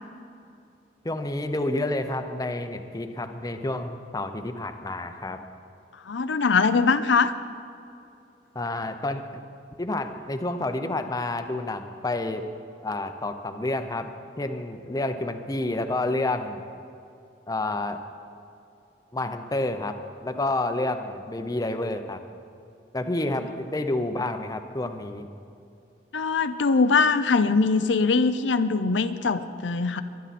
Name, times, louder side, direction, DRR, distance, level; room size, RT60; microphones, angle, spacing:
voice 1, 1.0-5.4 8.5-9.4 9.8-12.5 12.8-14.1 14.4-16.6 17.5-18.0 19.1-22.2 22.9-25.3, left 2 dB, 20° left, 7 dB, 0.7 m, -29 dB
voice 2, 6.1-7.3 26.1-30.0, left 4 dB, 85° left, 10 dB, 0.6 m, -22 dB
23.0 x 10.5 x 4.2 m, 2.6 s
head